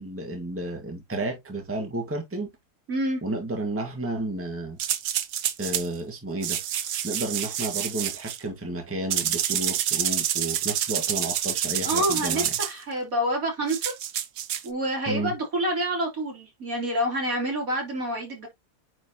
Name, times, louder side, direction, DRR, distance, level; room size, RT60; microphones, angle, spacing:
voice 1, 0.0-2.5 3.2-4.8 5.6-6.6 7.0-12.5 15.1-15.3, right 1 dB, 10° right, 1.6 m, -32 dB
voice 2, 2.9-3.2 11.8-13.9 14.6-18.5, right 1 dB, 60° right, 3.6 m, -27 dB
sound 1, 4.8-5.9 6.4-8.4 9.1-12.7 13.7-14.7, right 10 dB, 85° right, 1.4 m, -28 dB
9.3 x 4.2 x 2.8 m
omnidirectional pair, 1.7 m